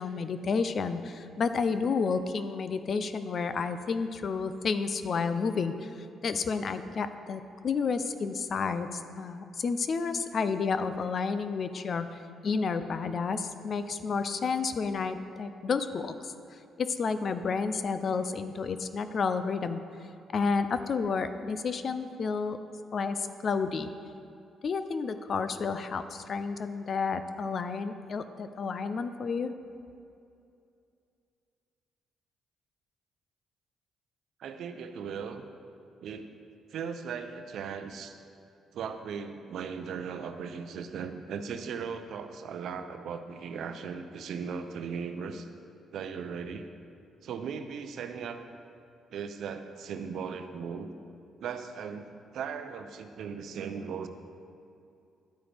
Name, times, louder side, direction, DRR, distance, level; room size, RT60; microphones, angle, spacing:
voice 1, 0.0-5.9 6.2-12.1 12.4-16.3 16.8-19.8 20.3-22.6 22.9-23.9 24.6-29.5, left 5 dB, 50° left, 10 dB, 0.5 m, -31 dB
voice 2, 34.4-35.4 36.0-36.3 36.7-38.2 38.7-45.5 45.9-46.7 47.2-48.4 49.1-50.9 51.4-52.1 52.3-54.1, right 6 dB, 70° right, 8 dB, 0.6 m, -37 dB
10.5 x 8.8 x 3.5 m, 2.5 s
cardioid pair, 90°, 0 cm